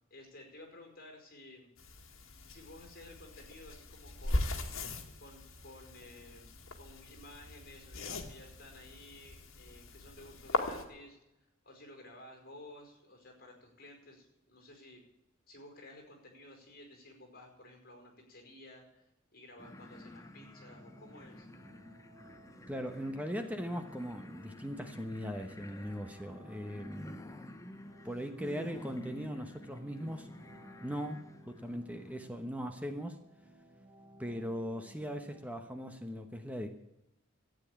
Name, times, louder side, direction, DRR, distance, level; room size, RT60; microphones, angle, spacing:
voice 1, 0.1-1.7 2.4-4.6 5.2-6.5 6.8-11.2 11.6-15.0 15.5-21.5, left 1 dB, 45° left, 3 dB, 4.9 m, -54 dB
sound 1, 1.8-10.8, left 2 dB, 80° left, 1.9 m, -39 dB
sound 2, 19.6-32.2, left 1 dB, 15° left, 0.9 m, -51 dB
sound 3, 20.7-35.4, equal, 35° right, 4.8 m, -59 dB
voice 2, 22.7-27.3 28.0-30.3 30.8-33.2 34.2-36.7, equal, 5° right, 6 dB, 1.1 m, -39 dB
13.5 x 9.2 x 8.5 m, 0.87 s
head